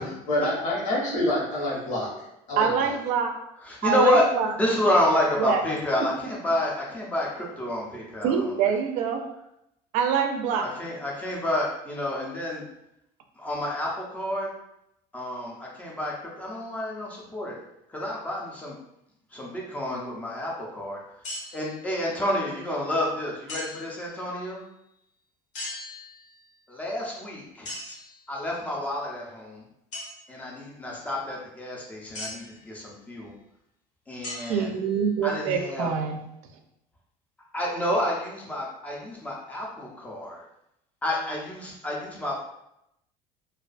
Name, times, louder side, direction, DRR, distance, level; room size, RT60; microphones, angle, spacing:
voice 1, 0.0-2.9, left 1 dB, 70° left, -4 dB, 1.1 m, -28 dB
voice 2, 2.6-3.3 3.8-4.5 5.4-5.6 8.2-9.2 9.9-10.7 34.5-36.2, right 7 dB, 65° right, 5 dB, 0.4 m, -25 dB
voice 3, 3.6-4.3 4.5-8.5 10.6-12.6 13.4-14.5 15.1-17.6 17.9-18.8 19.3-21.0 21.5-24.6 26.7-27.7 28.3-29.6 30.3-33.3 34.1-34.7 35.2-35.9 37.5-40.4 41.0-42.4, left 1 dB, 10° left, -3 dB, 0.4 m, -29 dB
sound 1, 21.2-21.8 23.5-24.0 25.5-26.4 27.6-28.2 29.9-30.1 32.1-32.5 34.2-35.0, left 2 dB, 50° left, 0.7 m, -38 dB
2.3 x 2.2 x 2.4 m, 0.82 s
cardioid pair, 165°, 14 cm